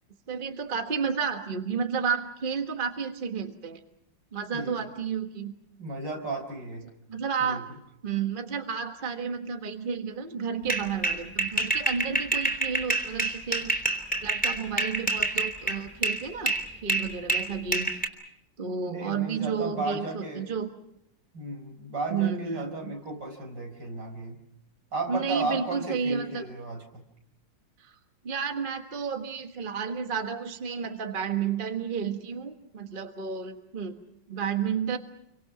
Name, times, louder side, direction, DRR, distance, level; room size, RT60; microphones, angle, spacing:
voice 1, 0.3-3.8 4.3-5.5 7.1-7.6 8.0-13.7 14.2-16.6 16.8-17.9 18.6-20.7 22.1-22.9 25.1-26.5 27.8-27.9 28.2-34.0 34.3-35.0, right 6 dB, 30° right, 5 dB, 1.5 m, -31 dB
voice 2, 4.5-4.9 5.8-6.9 7.4-7.6 18.9-20.5 21.3-24.4 24.9-27.0, right 3 dB, 75° right, 3 dB, 5.3 m, -34 dB
sound 1, 10.7-16.2 16.5-18.1, right 2 dB, 5° left, 3.2 m, -27 dB
29.0 x 24.5 x 6.1 m, 0.78 s
omnidirectional pair, 2.0 m